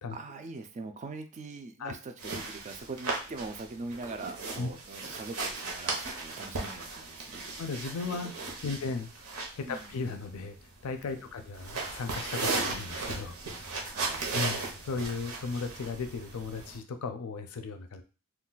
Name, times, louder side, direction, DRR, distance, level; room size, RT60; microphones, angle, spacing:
voice 1, 0.1-7.4 8.7-9.0 9.6-10.0 11.1-11.3 13.9-14.5, right 3 dB, 30° right, 7 dB, 0.3 m, -42 dB
sound 1, 2.2-16.8, right 3 dB, 75° right, 0.8 m, -37 dB
voice 2, 7.6-8.3 8.6-9.1 9.6-10.6 10.8-13.4 14.3-18.0, left 4 dB, 75° left, 7 dB, 0.4 m, -36 dB
2.3 x 2.3 x 3.8 m, 0.34 s
head